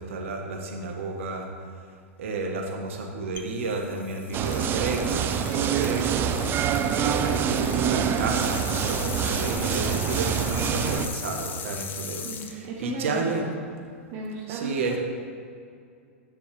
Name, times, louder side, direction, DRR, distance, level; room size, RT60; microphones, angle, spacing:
voice 1, 0.0-1.5 2.2-6.7 6.9-13.5 14.5-15.0, right 3 dB, 70° right, 2 dB, 1.3 m, -31 dB
sound 1, 3.4-13.5, left 7 dB, 25° left, 0.7 m, -38 dB
sound 2, 4.3-11.1, right 8 dB, 30° right, 0.4 m, -26 dB
voice 2, 12.2-13.5 14.1-15.0, right 4 dB, 45° right, -3 dB, 1.0 m, -35 dB
9.1 x 6.7 x 3.4 m, 2.4 s
hypercardioid pair, 110°, 7 cm